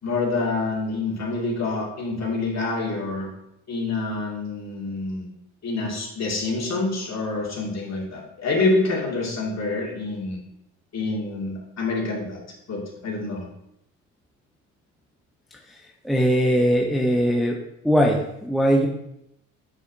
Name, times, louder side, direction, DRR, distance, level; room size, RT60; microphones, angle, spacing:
voice 1, 0.0-3.3 3.7-5.3 5.6-10.4 10.9-12.4 12.7-13.4, left 3 dB, 40° left, -3 dB, 2.6 m, -27 dB
voice 2, 16.0-17.6 17.8-18.9, equal, ahead, 0 dB, 0.8 m, -20 dB
7.5 x 6.2 x 2.8 m, 0.81 s
hypercardioid pair, 65°, 39 cm